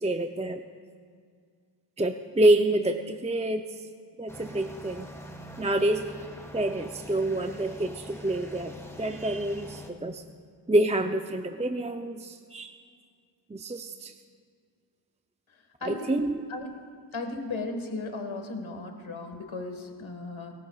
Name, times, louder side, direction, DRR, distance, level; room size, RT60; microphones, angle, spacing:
voice 1, 0.0-0.6 2.0-3.7 4.2-5.1 5.6-6.1 6.5-10.2 10.7-12.7 13.5-14.1 15.8-16.4, right 1 dB, 15° right, 6 dB, 0.5 m, -27 dB
sound 1, 4.3-9.9, equal, 5° left, 1.4 m, -44 dB
voice 2, 15.8-16.2 16.5-16.7 17.1-20.5, left 2 dB, 75° left, 4 dB, 1.6 m, -36 dB
24.5 x 14.5 x 2.4 m, 2.1 s
wide cardioid pair, 45°, 47 cm